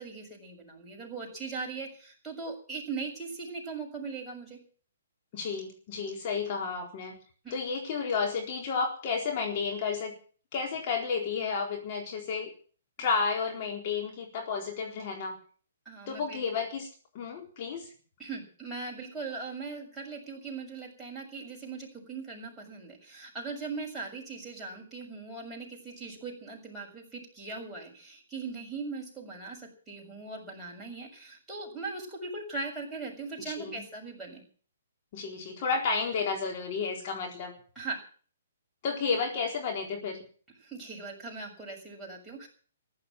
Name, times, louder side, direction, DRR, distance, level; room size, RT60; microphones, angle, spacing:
voice 1, 0.0-4.6 7.4-7.5 15.8-16.4 18.2-34.4 37.7-38.0 40.6-42.5, right 4 dB, 5° right, -3 dB, 6.7 m, -39 dB
voice 2, 5.3-7.2 7.5-10.1 10.5-12.5 13.0-15.4 16.1-16.9 17.1-17.9 33.6-33.8 35.1-37.5 38.8-40.2, left 5 dB, 40° left, 1 dB, 4.1 m, -31 dB
15.0 x 11.5 x 7.6 m, 0.42 s
hypercardioid pair, 130°, 0 cm